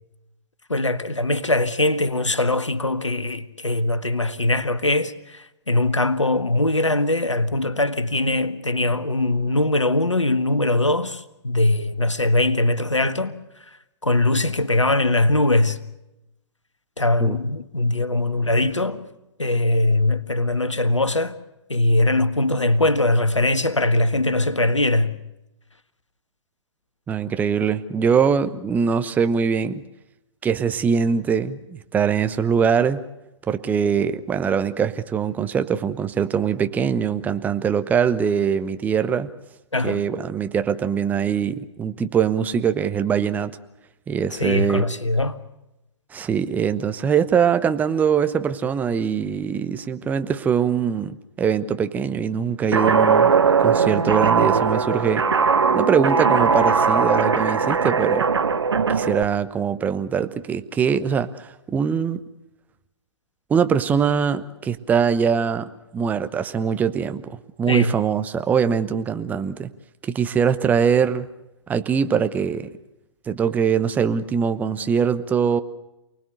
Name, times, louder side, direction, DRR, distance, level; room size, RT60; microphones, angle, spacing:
voice 1, 0.7-13.4 14.0-15.8 17.0-19.0 19.4-21.4 21.7-25.2 39.7-40.0 44.4-45.4 67.7-67.9, left 2 dB, 80° left, 1.6 m, -21 dB
voice 2, 27.1-29.8 30.4-33.0 33.5-39.3 39.8-43.5 44.1-44.9 46.1-53.3 53.6-55.2 55.7-58.3 58.9-62.2 63.5-69.7 70.0-71.3 71.7-72.7 73.3-75.6, right 7 dB, 10° right, 1.0 m, -22 dB
Guitar, 52.7-59.2, right 5 dB, 65° right, 1.3 m, -19 dB
28.5 x 19.5 x 6.7 m
figure-of-eight pair, 120°, 15 cm